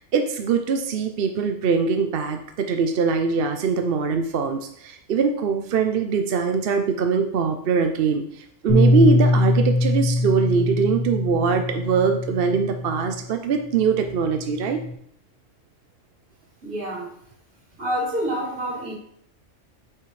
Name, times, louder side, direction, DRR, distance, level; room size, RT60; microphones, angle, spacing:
voice 1, 0.0-14.8, right 5 dB, 55° right, 6 dB, 0.8 m, -22 dB
Bass guitar, 8.7-13.2 14.0-14.9, left 1 dB, 25° left, 2.0 m, -22 dB
voice 2, 16.6-17.2 17.8-18.9, equal, 75° right, -9 dB, 3.7 m, -27 dB
8.2 x 5.8 x 3.2 m, 0.69 s
omnidirectional pair, 1.3 m